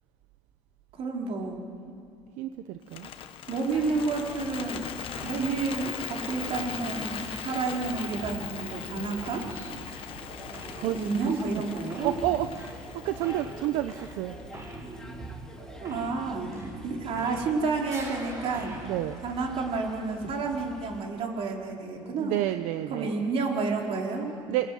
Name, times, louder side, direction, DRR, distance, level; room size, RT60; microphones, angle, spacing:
voice 1, 0.9-1.6 3.5-4.9 5.2-9.4 10.8-12.1 15.8-18.8 19.2-22.4 22.9-24.3, right 4 dB, 50° right, 0 dB, 4.3 m, -30 dB
voice 2, 2.4-3.1 10.8-11.4 12.0-12.5 12.9-14.4 18.8-19.2 22.0-23.1 24.5-24.7, right 14 dB, 80° right, 9 dB, 0.9 m, -30 dB
Bird, 2.8-15.0, left 9 dB, 45° left, 1.5 m, -40 dB
sound 1, 3.7-21.0, left 2 dB, 5° left, 2.8 m, -48 dB
sound 2, 5.2-5.6 5.8-17.6 17.9-20.1, right 2 dB, 25° right, 4.7 m, -44 dB
27.5 x 20.5 x 9.4 m, 2.4 s
cardioid pair, 135°, 12 cm